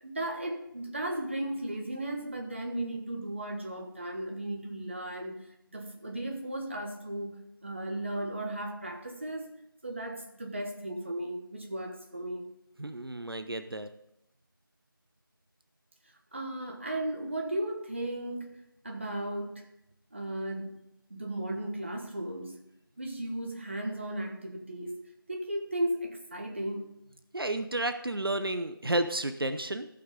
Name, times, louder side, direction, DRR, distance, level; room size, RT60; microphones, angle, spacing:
voice 1, 0.0-5.4 5.7-12.4 16.3-19.7 20.1-20.8 21.1-22.6 23.0-26.9, right 1 dB, 30° right, 1.4 m, -35 dB
voice 2, 12.8-13.9 27.3-29.9, right 1 dB, 75° right, 0.9 m, -31 dB
15.0 x 5.9 x 5.1 m
figure-of-eight pair, 175°, 12 cm